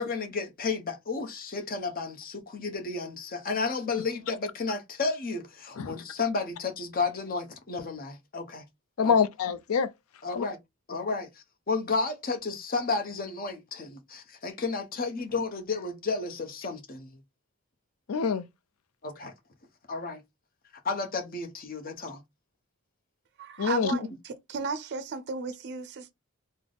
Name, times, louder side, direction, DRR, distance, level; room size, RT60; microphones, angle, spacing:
voice 1, 0.0-8.6 9.0-9.2 10.2-10.6 10.9-17.2 19.0-19.3 19.9-20.2 20.8-22.2 23.9-24.0, left 4 dB, 40° left, 0.8 m, -32 dB
voice 2, 9.0-9.9 10.4-10.5 18.1-18.5 23.6-23.9, left 6 dB, 80° left, 0.5 m, -26 dB
voice 3, 23.4-26.1, right 5 dB, 55° right, 0.4 m, -35 dB
3.3 x 2.0 x 3.9 m
head